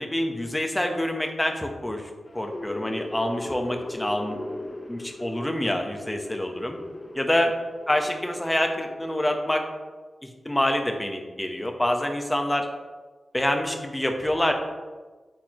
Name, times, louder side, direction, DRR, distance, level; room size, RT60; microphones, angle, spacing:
voice 1, 0.0-4.4 4.9-6.8 7.1-7.5 7.9-9.6 10.4-12.7 13.3-14.5, left 1 dB, 15° left, 3 dB, 1.1 m, -26 dB
sound 1, 2.3-9.5, left 1 dB, 35° left, 0.5 m, -38 dB
8.4 x 4.2 x 3.0 m, 1.3 s
cardioid pair, 40°, 0 cm